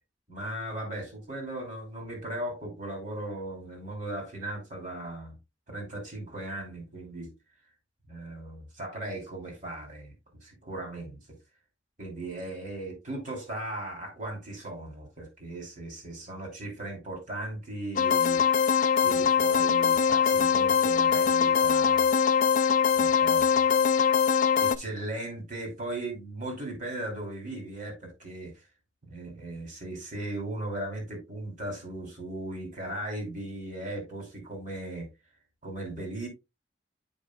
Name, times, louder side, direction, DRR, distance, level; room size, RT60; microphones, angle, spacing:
voice 1, 0.3-5.4 5.7-7.3 8.1-10.1 10.4-11.2 12.0-18.4 19.0-22.1 22.9-23.6 24.5-28.6 29.1-35.1 35.6-36.3, right 1 dB, 40° right, 2.7 m, -37 dB
sound 1, 18.0-24.8, left 7 dB, 40° left, 0.3 m, -22 dB
8.6 x 5.0 x 2.3 m
head